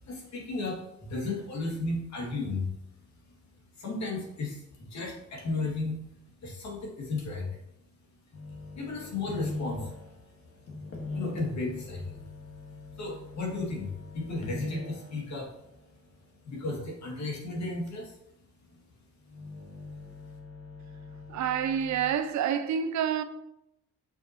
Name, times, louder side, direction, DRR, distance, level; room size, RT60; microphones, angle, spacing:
voice 1, 0.0-2.7 3.8-6.0 6.4-7.5 8.7-9.9 11.1-12.2 13.0-15.5 16.5-18.2, left 3 dB, 65° left, 2.3 m, -34 dB
sound 1, 8.3-15.4 17.9-18.0 19.2-22.1, left 3 dB, 50° left, 1.7 m, -41 dB
voice 2, 21.3-23.2, right 8 dB, 70° right, 0.7 m, -28 dB
7.1 x 6.3 x 3.0 m
cardioid pair, 90°, 30 cm